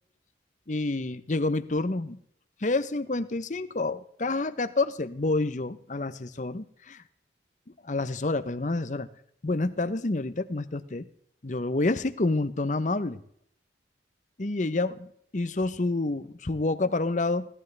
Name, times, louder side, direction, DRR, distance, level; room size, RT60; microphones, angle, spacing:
voice 1, 0.7-2.2 2.6-7.0 7.8-9.1 9.4-11.1 11.4-13.2 14.4-15.1 15.3-17.5, left 2 dB, 40° left, 12 dB, 0.8 m, -28 dB
17.0 x 13.5 x 3.3 m, 0.68 s
head